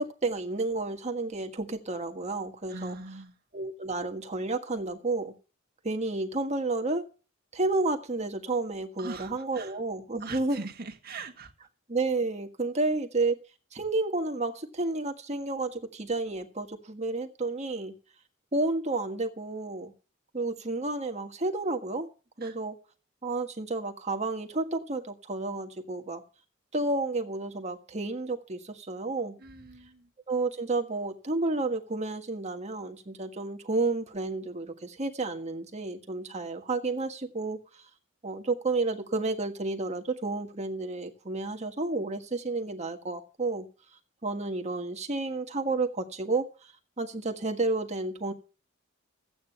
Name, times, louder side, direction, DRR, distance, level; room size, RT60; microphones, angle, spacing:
voice 1, 0.0-3.0 3.5-5.3 5.8-7.0 7.5-10.6 11.9-13.4 13.7-17.9 18.5-19.9 20.3-22.1 22.4-22.8 23.2-26.2 26.7-29.4 30.3-37.6 38.2-43.7 44.2-46.4 47.0-48.3, right 3 dB, 35° right, 1.6 m, -31 dB
voice 2, 2.7-3.3 9.0-9.8 10.2-11.5 22.4-22.6 29.4-30.1, right 3 dB, 50° right, 1.7 m, -41 dB
14.0 x 8.7 x 5.7 m
head